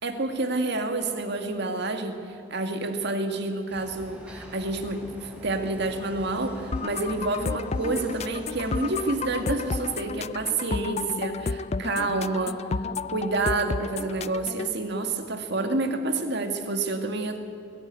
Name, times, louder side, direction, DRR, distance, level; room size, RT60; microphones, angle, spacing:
voice 1, 0.0-12.6 13.1-17.4, right 2 dB, 60° right, 6 dB, 2.0 m, -28 dB
sound 1, 3.7-10.1, equal, 5° right, 3.7 m, -44 dB
sound 2, 6.7-14.7, left 4 dB, 35° left, 0.4 m, -32 dB
20.0 x 17.0 x 9.0 m, 2.3 s
head